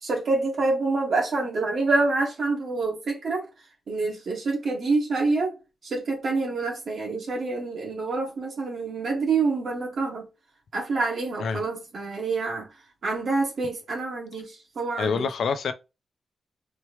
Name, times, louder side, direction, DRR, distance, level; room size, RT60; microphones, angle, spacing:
voice 1, 0.0-3.5 3.9-5.5 5.8-10.2 10.7-12.7 13.0-15.3, right 3 dB, 50° right, 1.9 m, -27 dB
voice 2, 15.0-15.7, left 5 dB, 65° left, 0.5 m, -26 dB
4.3 x 3.2 x 3.1 m
wide cardioid pair, 165°, 0 cm